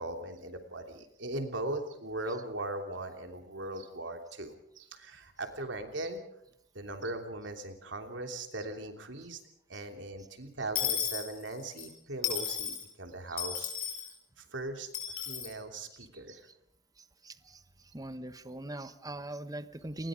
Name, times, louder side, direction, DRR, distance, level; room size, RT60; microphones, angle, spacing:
voice 1, 0.0-6.2 6.7-9.4 9.7-13.7 14.4-14.9 15.3-16.5, right 2 dB, 90° right, 5 dB, 3.1 m, -39 dB
Dishes pots and pans / Coin (dropping), 10.7-11.9 12.2-12.8 13.4-14.1 14.9-15.5, left 9 dB, 55° left, 6.5 m, -34 dB
voice 2, 17.2-17.6 17.9-20.1, right 1 dB, 20° right, 12 dB, 1.1 m, -41 dB
29.0 x 20.5 x 5.1 m, 0.72 s
head